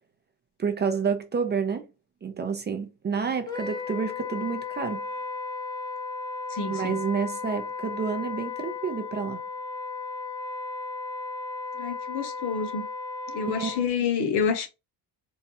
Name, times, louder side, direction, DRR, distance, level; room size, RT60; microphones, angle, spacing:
voice 1, 0.6-1.8 2.2-5.0 6.7-9.4 13.4-13.7, right 6 dB, 25° right, 0.4 m, -29 dB
Wind instrument woodwind instrument, 3.5-13.9, left 4 dB, 10° left, 0.9 m, -35 dB
voice 2, 6.5-7.0 11.8-12.9 13.3-14.7, left 6 dB, 70° left, 0.9 m, -28 dB
4.1 x 2.3 x 2.7 m
cardioid pair, 150°, 41 cm